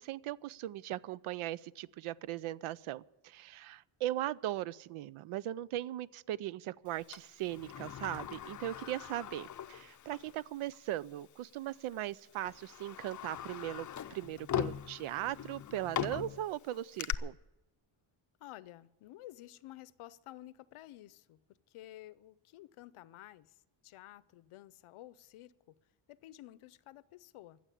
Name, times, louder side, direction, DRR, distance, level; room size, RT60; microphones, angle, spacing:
voice 1, 0.0-17.4, right 13 dB, 80° right, 0.6 m, -39 dB
Sliding door, 7.1-10.4 10.7-10.8 11.7-11.9 12.4-17.1, left 10 dB, 40° left, 0.6 m, -40 dB
voice 2, 18.4-21.4 21.7-23.6 23.8-25.7 26.1-27.6, left 15 dB, 80° left, 0.7 m, -52 dB
14.5 x 7.5 x 9.9 m
cardioid pair, 100°, 49 cm